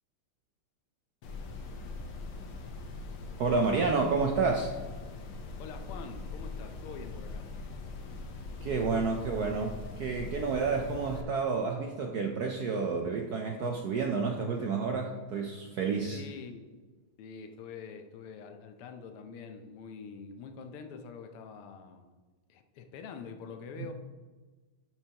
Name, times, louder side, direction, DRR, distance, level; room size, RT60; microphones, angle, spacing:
sound 1, 1.2-11.2, left 3 dB, 65° left, 1.5 m, -42 dB
voice 1, 3.4-4.8 8.6-16.2 23.8-23.9, right 4 dB, 75° right, 2 dB, 0.9 m, -30 dB
voice 2, 5.6-7.5 16.1-16.7 17.2-22.1 22.5-23.9, left 5 dB, 85° left, 6 dB, 1.7 m, -45 dB
11.0 x 5.9 x 2.9 m, 1.3 s
omnidirectional pair, 2.4 m